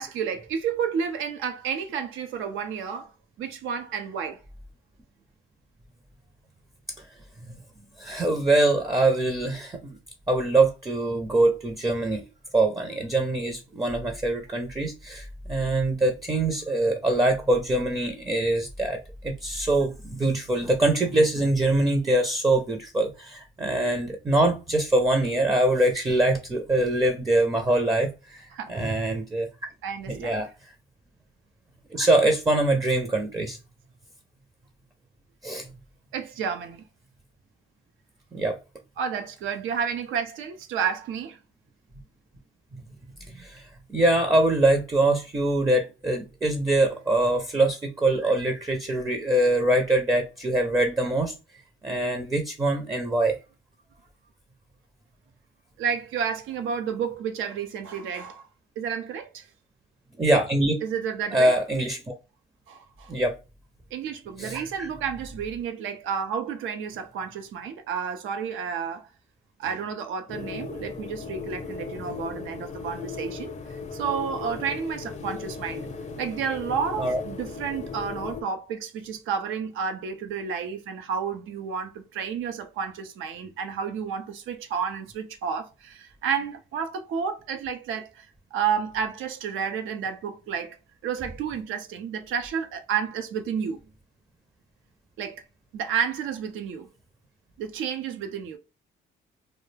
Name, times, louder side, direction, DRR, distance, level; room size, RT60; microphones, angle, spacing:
voice 1, 0.0-3.1 3.4-4.4 28.5-28.8 29.8-30.5 36.1-36.8 39.0-41.4 55.8-58.5 58.8-59.5 60.8-61.6 62.7-63.1 63.9-69.1 69.6-75.9 76.2-90.8 91.0-93.8 95.2-95.4 95.7-96.9 97.6-98.6, right 7 dB, 85° right, 0.5 m, -31 dB
voice 2, 8.0-10.0 10.3-12.2 12.5-19.0 19.2-29.5 30.1-30.5 31.9-33.6 35.4-35.7 38.3-38.6 43.3-51.3 51.8-53.4 60.2-60.8 61.3-62.1 63.1-63.4 64.4-64.9 77.0-77.2, right 2 dB, 15° right, 0.5 m, -23 dB
sound 1, 70.3-78.4, left 5 dB, 35° left, 0.5 m, -37 dB
2.3 x 2.0 x 3.2 m
cardioid pair, 90°, 20 cm